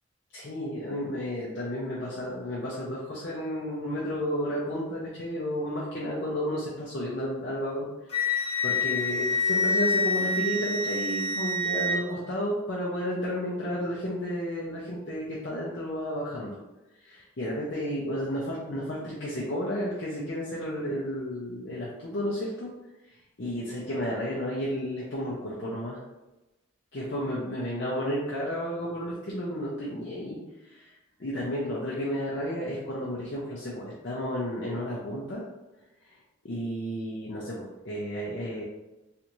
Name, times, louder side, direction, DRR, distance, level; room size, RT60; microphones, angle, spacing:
voice 1, 0.3-16.6 17.0-22.7 23.1-26.0 26.9-30.9 31.2-35.4 36.0-36.2 36.4-38.6, equal, 60° left, -6 dB, 0.6 m, -32 dB
Wind instrument woodwind instrument, 8.1-12.0, left 2 dB, 35° left, 0.9 m, -27 dB
3.3 x 2.6 x 3.0 m, 1.0 s
head